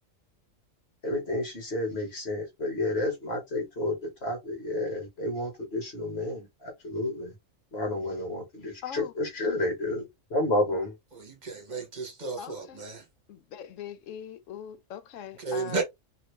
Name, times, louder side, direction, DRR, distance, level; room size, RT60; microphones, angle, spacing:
voice 1, 1.0-7.3 7.7-11.0, left 1 dB, 50° left, 1.7 m, -31 dB
voice 2, 8.8-9.1 12.4-12.8 13.3-15.8, left 9 dB, 80° left, 0.9 m, -41 dB
voice 3, 11.1-13.0 15.4-15.8, right 4 dB, 35° right, 1.2 m, -33 dB
3.0 x 2.8 x 3.1 m
omnidirectional pair, 1.3 m